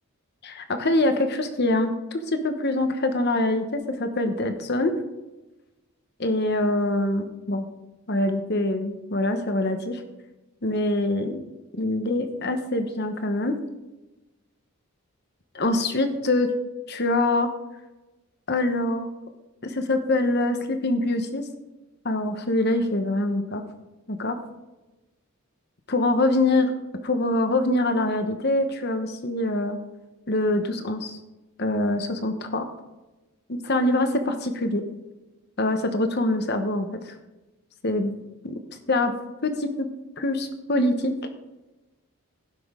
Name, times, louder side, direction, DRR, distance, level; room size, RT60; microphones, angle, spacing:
voice 1, 0.4-4.9 6.2-7.7 8.1-10.0 10.6-11.4 11.8-13.5 15.5-16.5 16.9-17.5 18.5-19.1 19.6-21.4 22.0-23.6 24.1-24.4 25.9-26.7 27.0-29.8 30.3-31.1 31.6-32.6 33.5-34.8 35.6-37.2 37.8-38.1 38.4-38.5 38.9-39.1 39.4-39.9 40.2-41.1, left 2 dB, 50° left, 7 dB, 1.0 m, -24 dB
16.5 x 6.2 x 3.7 m, 1.1 s
head